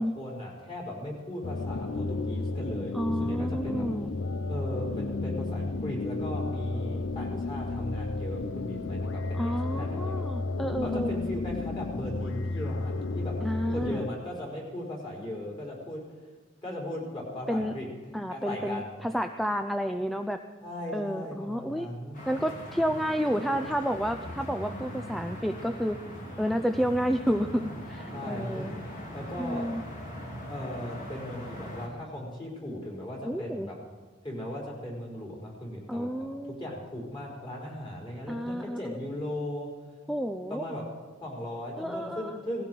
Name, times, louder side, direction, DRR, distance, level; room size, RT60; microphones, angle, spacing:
voice 1, 0.0-3.9 4.5-10.3 10.8-13.4 13.7-16.1 16.6-19.0 20.6-22.2 28.1-28.8 29.1-29.7 30.5-33.8 34.2-39.8 40.5-40.8 41.2-42.7, left 1 dB, 25° left, -3 dB, 4.5 m, -38 dB
sound 1, 1.4-14.1, left 3 dB, 75° left, 0.7 m, -32 dB
voice 2, 2.9-4.1 9.3-11.1 13.4-14.1 17.5-17.7 18.1-20.4 20.9-21.9 22.3-26.0 26.4-27.6 27.9-28.7 29.4-29.8 33.2-33.7 35.9-36.6 38.3-39.0 40.1-40.6 41.8-42.4, equal, ahead, 7 dB, 0.4 m, -30 dB
sound 2, 22.1-31.9, equal, 45° left, 2.9 m, -40 dB
18.5 x 15.5 x 4.7 m, 1.4 s
head